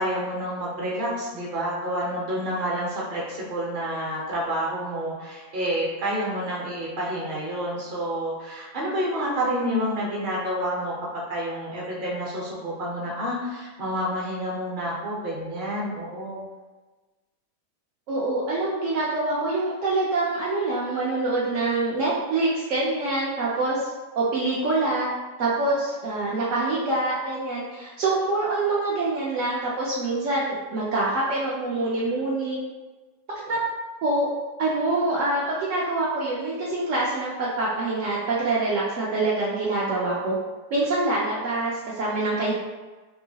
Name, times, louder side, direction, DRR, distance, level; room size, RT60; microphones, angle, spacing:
voice 1, 0.0-16.4, equal, 45° right, -4 dB, 0.6 m, -29 dB
voice 2, 18.1-23.9 24.2-25.1 25.4-32.6 33.5-33.6 34.0-34.3 34.6-40.4 40.7-42.6, right 2 dB, 85° right, -6 dB, 0.6 m, -25 dB
3.0 x 2.7 x 2.7 m, 1.3 s
omnidirectional pair, 1.9 m